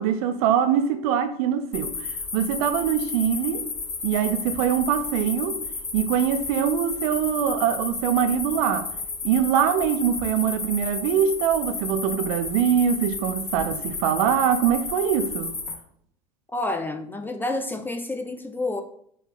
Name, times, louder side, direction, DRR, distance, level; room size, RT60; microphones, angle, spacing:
voice 1, 0.0-3.6 4.0-5.6 5.9-8.9 9.2-15.5, right 8 dB, 60° right, 0.6 m, -23 dB
sound 1, 1.7-15.7, left 4 dB, 30° left, 1.6 m, -32 dB
voice 2, 16.5-18.8, left 2 dB, 10° left, 0.5 m, -29 dB
5.3 x 2.4 x 3.8 m
hypercardioid pair, 80°, 21 cm